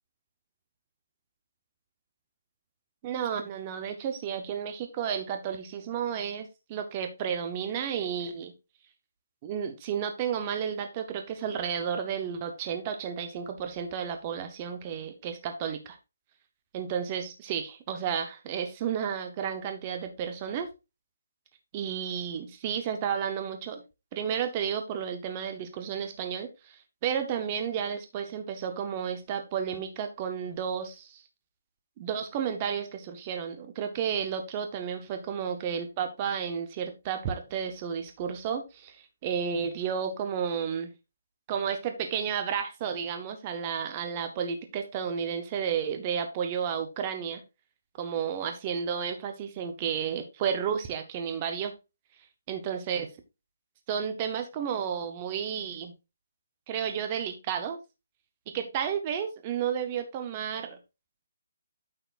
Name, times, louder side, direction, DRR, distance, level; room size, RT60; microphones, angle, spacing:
voice 1, 3.0-8.5 9.4-16.0 16.7-20.7 21.7-23.8 24.1-31.2 32.0-40.9 41.5-47.4 48.0-51.7 52.5-53.1 53.9-55.9 56.7-57.8 58.5-60.8, right 7 dB, 20° right, 7 dB, 0.7 m, -32 dB
9.1 x 6.7 x 2.4 m, 0.26 s
hypercardioid pair, 180°, 0 cm